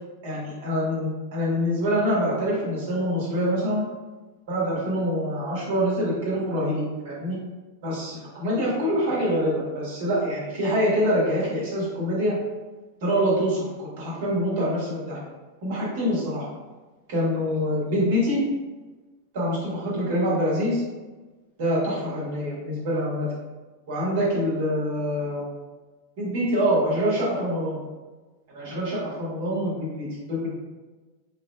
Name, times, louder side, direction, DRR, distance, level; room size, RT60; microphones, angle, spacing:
voice 1, 0.2-3.8 4.5-7.4 7.8-12.4 13.0-15.2 15.6-16.5 17.1-18.4 19.3-20.8 21.6-23.3 23.9-25.5 26.2-27.8 28.5-30.5, equal, 55° right, -5 dB, 1.5 m, -25 dB
4.5 x 3.1 x 2.3 m, 1.2 s
figure-of-eight pair, 90°, 0 cm